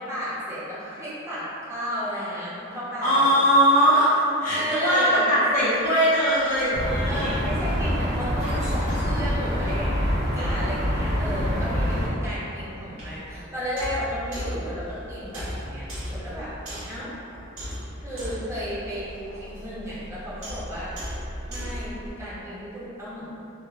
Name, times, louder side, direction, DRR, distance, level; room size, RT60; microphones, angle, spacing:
voice 1, 0.0-3.5 4.5-5.4 7.0-16.5 16.9-17.1 18.0-20.9 21.5-23.2, equal, 15° right, -10 dB, 0.6 m, -33 dB
voice 2, 3.0-7.4, equal, 40° left, -12 dB, 0.6 m, -20 dB
sound 1, 5.5-22.1, equal, 80° right, 1.0 m, -39 dB
sound 2, 6.7-12.1, equal, 55° right, 0.9 m, -25 dB
2.9 x 2.0 x 2.3 m, 2.8 s
head